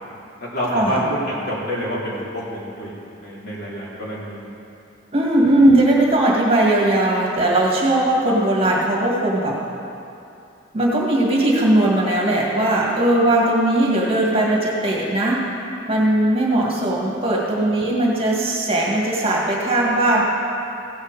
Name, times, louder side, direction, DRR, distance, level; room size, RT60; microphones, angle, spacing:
voice 1, 0.4-4.5, equal, 60° left, -7 dB, 3.3 m, -27 dB
voice 2, 5.1-9.6 10.7-15.5 15.9-20.2, right 1 dB, 30° right, -3 dB, 1.8 m, -18 dB
16.0 x 7.5 x 4.9 m, 2.6 s
head